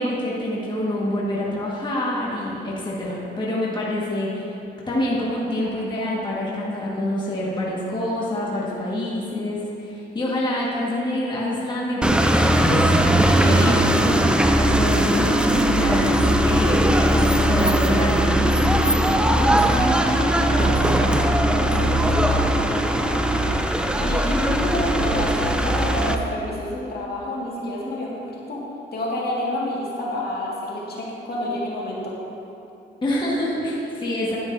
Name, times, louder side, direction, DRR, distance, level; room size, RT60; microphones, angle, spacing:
voice 1, 0.0-4.5 4.9-12.4 12.6-14.1 14.6-16.2 16.4-18.5 33.0-34.4, left 1 dB, 25° left, -6 dB, 1.7 m, -26 dB
sound 1, 12.0-26.2, right 1 dB, 5° right, 0.5 m, -19 dB
voice 2, 19.3-23.5 24.0-28.6 28.9-32.2, left 1 dB, 50° left, -5 dB, 2.0 m, -29 dB
9.9 x 9.8 x 2.7 m, 2.9 s
cardioid pair, 90°, 20 cm